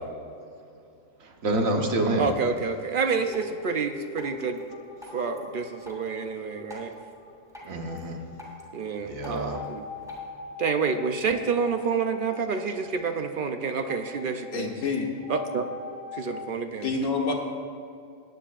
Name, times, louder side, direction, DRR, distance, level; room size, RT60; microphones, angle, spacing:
voice 1, 1.2-2.3 5.0-5.1 7.6-8.2 9.0-9.6 12.4-12.5 12.7-12.8, right 1 dB, 80° right, 2 dB, 1.5 m, -28 dB
voice 2, 2.2-4.6 5.1-6.9 8.7-9.8 10.6-14.7 15.3-15.7 16.1-16.9, right 5 dB, 55° right, 7 dB, 0.6 m, -28 dB
sound 1, 3.3-16.5, left 4 dB, 55° left, 1.1 m, -43 dB
Drip, 3.3-10.3, equal, ahead, 2.8 m, -49 dB
voice 3, 14.5-15.1 16.8-17.3, left 4 dB, 70° left, 1 dB, 1.7 m, -27 dB
18.5 x 9.4 x 2.5 m, 2.4 s
omnidirectional pair, 1.4 m